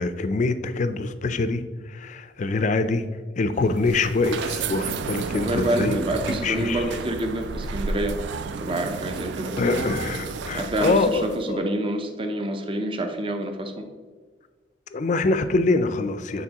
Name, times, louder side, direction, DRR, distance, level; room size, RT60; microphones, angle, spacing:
voice 1, 0.0-1.6 1.9-3.0 3.4-6.0 6.3-6.8 9.6-11.6 14.9-16.4, left 3 dB, 40° left, 11 dB, 0.4 m, -24 dB
sound 1, 3.6-11.5, right 5 dB, 70° right, 0.3 m, -32 dB
voice 2, 5.3-8.2 8.5-9.6 10.5-13.9, right 1 dB, 30° right, 5 dB, 0.6 m, -27 dB
8.3 x 4.0 x 2.9 m, 1.5 s
head